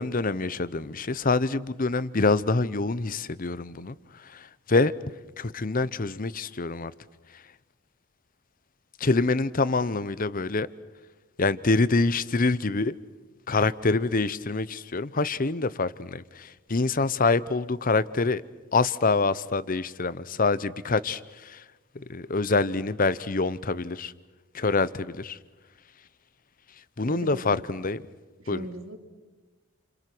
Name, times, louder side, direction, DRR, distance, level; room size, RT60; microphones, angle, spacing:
voice 1, 0.0-4.9 5.4-6.9 7.3-7.4 9.0-10.7 11.4-13.0 13.5-18.4 18.7-21.6 21.9-24.1 24.5-25.4 27.0-28.1 28.5-28.7, left 3 dB, 40° left, 0.8 m, -26 dB
voice 2, 27.1-27.6 28.4-29.0, right 1 dB, 65° right, 3.0 m, -38 dB
29.5 x 27.5 x 6.2 m
head